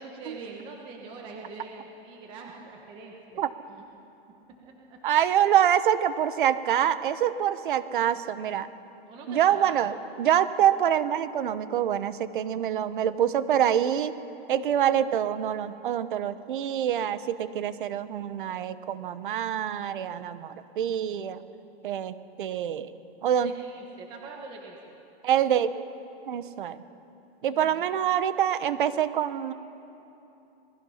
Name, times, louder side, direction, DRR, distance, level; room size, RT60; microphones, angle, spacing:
voice 1, 0.0-3.4 3.7-3.8 4.9-5.0 9.1-9.9 23.2-24.9 27.5-27.9, right 3 dB, 15° right, 0 dB, 1.1 m, -44 dB
voice 2, 5.0-8.7 9.3-14.1 14.5-21.4 21.8-22.9 23.2-23.5 25.2-25.7 26.3-26.8 27.4-29.5, right 10 dB, 55° right, 14 dB, 1.0 m, -25 dB
27.0 x 19.5 x 5.7 m, 3.0 s
supercardioid pair, 180°, 31 cm